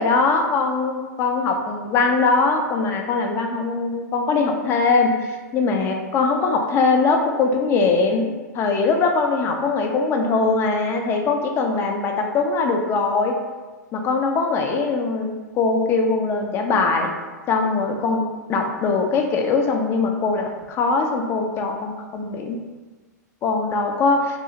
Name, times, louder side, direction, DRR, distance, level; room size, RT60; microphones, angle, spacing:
voice 1, 0.0-13.4 13.9-17.1 17.5-18.2 18.5-22.6 23.4-24.2, left 4 dB, 25° left, 3 dB, 0.3 m, -21 dB
2.4 x 2.3 x 2.8 m, 1.3 s
hypercardioid pair, 105°, 10 cm